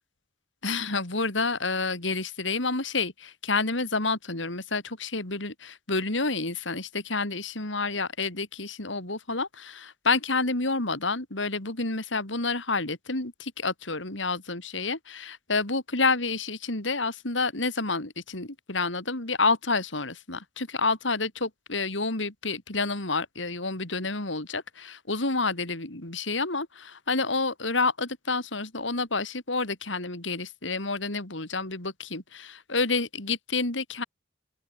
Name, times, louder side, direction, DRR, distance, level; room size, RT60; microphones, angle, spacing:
voice 1, 0.6-34.0, left 3 dB, 75° left, 4.0 m, -29 dB
open air
head